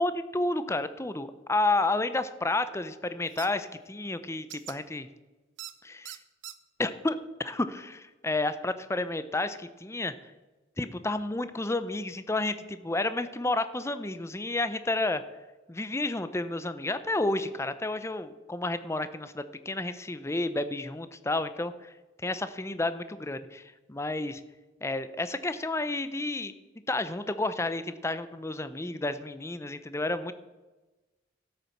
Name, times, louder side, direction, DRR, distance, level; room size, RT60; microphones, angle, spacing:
voice 1, 0.0-5.1 5.8-6.2 6.8-10.1 10.8-15.2 15.7-21.9 22.2-24.4 24.8-26.5 26.9-30.3, left 2 dB, 15° left, 12 dB, 0.5 m, -31 dB
sound 1, 3.4-3.5 4.5-4.8 5.6-5.7 6.0-6.5, right 13 dB, 65° right, 0.7 m, -41 dB
12.5 x 8.3 x 5.9 m, 1.2 s
head